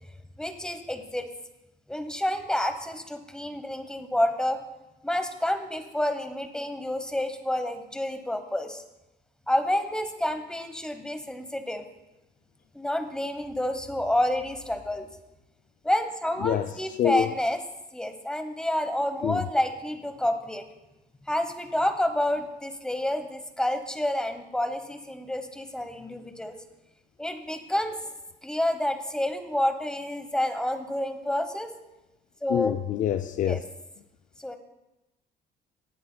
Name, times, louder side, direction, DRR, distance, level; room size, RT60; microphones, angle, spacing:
voice 1, 0.4-1.3 1.9-4.6 5.0-8.8 9.5-11.9 12.7-15.1 15.8-17.6 17.9-20.6 21.3-26.6 27.2-28.0 28.4-31.7 32.4-32.8 33.4-33.6 34.4-34.6, left 1 dB, 5° left, 1.0 m, -29 dB
voice 2, 16.4-16.7 17.0-17.3 19.2-19.4 32.5-33.6, left 10 dB, 50° left, 0.4 m, -26 dB
18.5 x 8.3 x 2.3 m
cardioid pair, 110°, 17 cm